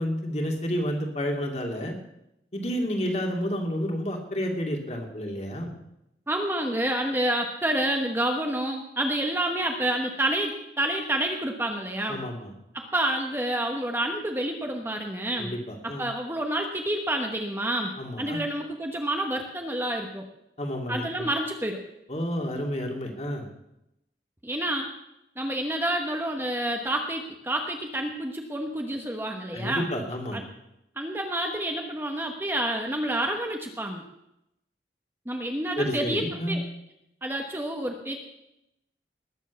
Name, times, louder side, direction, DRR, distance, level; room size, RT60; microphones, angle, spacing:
voice 1, 0.0-1.9 2.5-5.7 12.1-12.5 15.4-16.1 18.0-18.4 20.6-21.3 22.1-23.5 29.5-30.4 35.8-36.6, equal, 35° left, 2 dB, 2.4 m, -30 dB
voice 2, 6.3-12.2 12.7-15.5 15.8-20.2 20.9-21.8 24.4-24.9 25.4-29.9 30.3-30.5 31.0-34.0 35.3-36.6 37.2-38.2, right 1 dB, 10° right, 3 dB, 1.2 m, -29 dB
20.0 x 7.4 x 7.0 m, 0.84 s
head